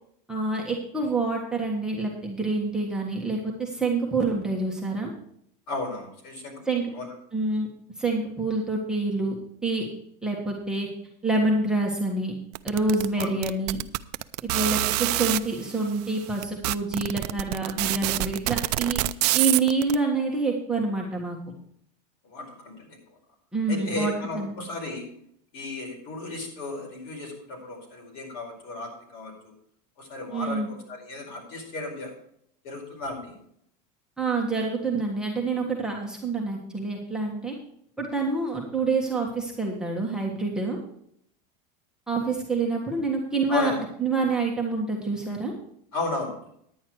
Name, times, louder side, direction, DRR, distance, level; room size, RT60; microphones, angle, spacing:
voice 1, 0.3-5.1 6.6-6.8 7.3-7.7 8.0-9.3 9.6-9.9 10.2-10.9 11.2-12.3 12.6-13.8 14.4-19.0 19.3-21.4 23.5-24.5 30.3-30.7 34.2-37.5 38.0-40.8 42.1-43.7 44.0-45.6, right 3 dB, 5° right, -2 dB, 1.5 m, -27 dB
voice 2, 5.7-6.6 6.9-7.1 13.2-13.3 14.5-14.8 22.2-23.0 23.7-25.0 25.5-29.5 30.0-32.1 32.6-33.3 43.5-43.8 45.9-46.5, left 2 dB, 60° left, 1 dB, 4.8 m, -34 dB
sound 1, 12.6-15.4 16.1-16.2 16.4-19.9, right 18 dB, 70° right, 0.5 m, -25 dB
10.0 x 9.7 x 4.7 m, 0.69 s
supercardioid pair, 155°, 21 cm